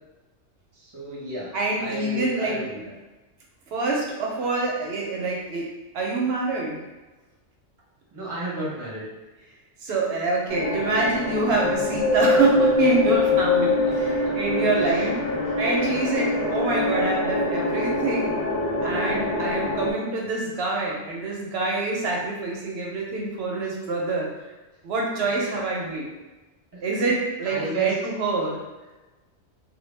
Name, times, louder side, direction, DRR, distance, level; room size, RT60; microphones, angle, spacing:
voice 1, 0.8-2.9 8.1-9.0 14.2-14.5 14.8-15.0 15.4-15.6 26.7-26.8 27.4-27.9, right 1 dB, 20° right, -7 dB, 0.6 m, -33 dB
voice 2, 1.5-2.6 3.7-5.7 5.9-6.8 9.8-15.2 15.6-18.3 18.8-24.3 24.8-26.1 26.8-28.6, right 3 dB, 65° right, -2 dB, 0.8 m, -26 dB
sound 1, 10.5-19.9, left 1 dB, 60° left, 0.6 m, -27 dB
Wind, 11.5-15.1 15.7-16.9 17.4-17.5, left 3 dB, 10° left, 0.8 m, -24 dB
2.1 x 2.1 x 3.1 m, 1.1 s
omnidirectional pair, 1.2 m